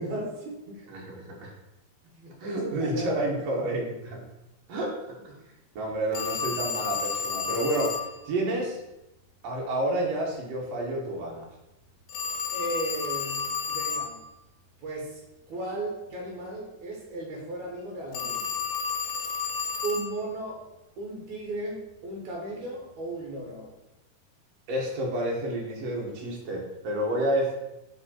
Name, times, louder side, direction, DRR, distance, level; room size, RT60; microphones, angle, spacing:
voice 1, 0.0-0.8 2.1-3.7 12.5-14.2 14.8-15.2 15.5-18.5 19.8-20.7 21.0-23.7, right 1 dB, 85° right, -1 dB, 1.6 m, -36 dB
voice 2, 0.9-1.5 2.4-4.2 4.7-5.4 5.7-8.8 9.4-11.4 24.7-27.5, right 1 dB, 70° right, -2 dB, 1.5 m, -30 dB
Telephone, 6.1-8.1 12.1-14.1 18.1-20.1, left 6 dB, 75° left, 2.4 m, -31 dB
6.9 x 3.5 x 4.3 m, 0.94 s
omnidirectional pair, 4.9 m